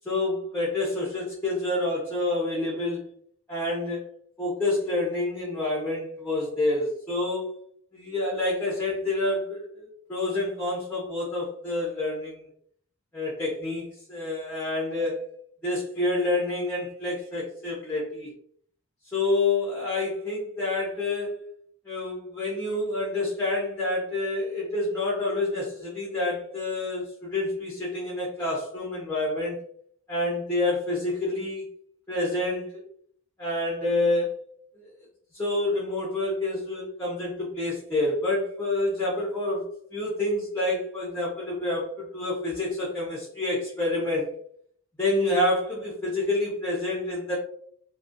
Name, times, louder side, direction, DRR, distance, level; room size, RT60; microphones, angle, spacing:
voice 1, 0.1-3.1 3.5-4.0 4.4-7.5 7.9-12.4 13.1-15.2 15.6-18.3 19.1-21.3 21.9-29.6 30.1-31.7 32.1-32.8 33.4-34.3 34.7-34.8 35.3-39.6 39.9-44.3 45.0-47.4, left 2 dB, 10° left, -5 dB, 0.5 m, -28 dB
2.3 x 2.1 x 2.5 m, 0.62 s
head